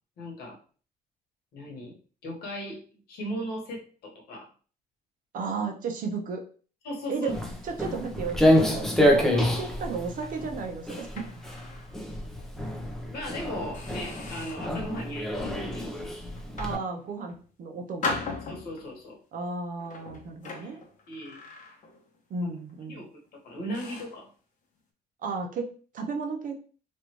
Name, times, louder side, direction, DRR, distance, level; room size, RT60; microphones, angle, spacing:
voice 1, 0.2-0.6 1.5-1.9 2.2-2.8 3.1-4.5 6.8-7.3 13.1-16.1 18.5-19.2 20.7-20.8 21.1-21.4 22.4-22.5 22.9-23.1 23.4-24.3, equal, 65° left, -1 dB, 1.4 m, -37 dB
voice 2, 5.3-6.4 7.1-7.4 7.6-11.3 16.6-18.2 19.3-20.8 22.3-23.0 25.2-26.6, right 4 dB, 55° right, 3 dB, 0.8 m, -34 dB
Walk footsteps, 7.3-16.8, left 1 dB, ahead, 0.7 m, -27 dB
sound 1, 10.1-11.9 12.4-12.6 13.1-13.3 13.7-14.8 15.3-15.7 16.4-17.4 18.0-19.0 19.8-22.2 22.4-22.7 23.3-23.4 23.7-24.2, left 3 dB, 50° left, 0.9 m, -39 dB
3.2 x 2.6 x 3.0 m, 0.40 s
cardioid pair, 110°, 17 cm